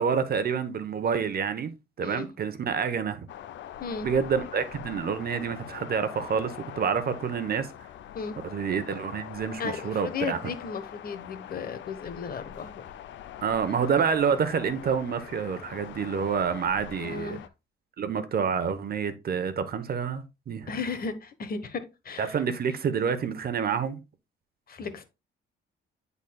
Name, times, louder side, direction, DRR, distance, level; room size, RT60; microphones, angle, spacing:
voice 1, 0.0-1.7 2.0-3.3 4.0-7.7 8.4-10.4 13.4-17.4 18.0-20.7 22.2-24.0, right 6 dB, 50° right, 0.9 m, -28 dB
sound 1, 3.3-17.5, left 10 dB, 70° left, 0.6 m, -43 dB
voice 2, 9.6-12.9 17.0-17.4 20.7-22.4 24.7-25.0, left 5 dB, 50° left, 1.2 m, -35 dB
10.5 x 4.0 x 2.3 m
cardioid pair, 90°, 20 cm